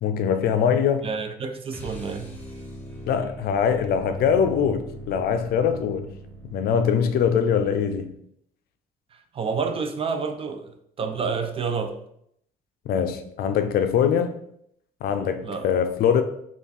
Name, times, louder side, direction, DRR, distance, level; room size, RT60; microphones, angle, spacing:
voice 1, 0.0-1.1 3.1-6.1 6.5-8.1 12.9-14.3 15.0-16.2, left 7 dB, 65° left, 0.4 m, -22 dB
voice 2, 1.0-2.3 9.1-12.0 15.4-15.7, right 5 dB, 35° right, 0.4 m, -29 dB
sound 1, 1.7-8.1, right 1 dB, 10° left, 1.0 m, -41 dB
3.4 x 2.4 x 4.0 m
cardioid pair, 110°, 17 cm